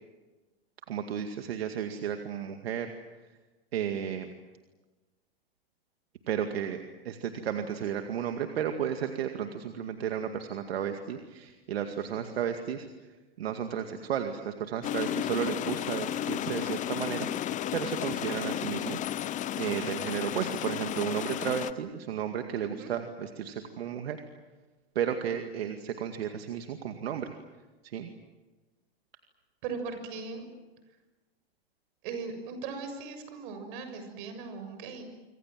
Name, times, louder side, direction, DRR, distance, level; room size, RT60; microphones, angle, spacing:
voice 1, 0.9-2.9 3.7-4.3 6.3-12.9 13.4-17.3 17.7-24.2 25.0-27.3 27.8-28.1, right 9 dB, 75° right, 6 dB, 2.2 m, -33 dB
sound 1, 14.8-21.7, left 11 dB, 25° left, 0.8 m, -33 dB
voice 2, 22.6-22.9 29.6-30.5 32.0-35.0, right 5 dB, 55° right, 8 dB, 7.0 m, -38 dB
26.5 x 25.5 x 7.6 m, 1.2 s
hypercardioid pair, 120°, 31 cm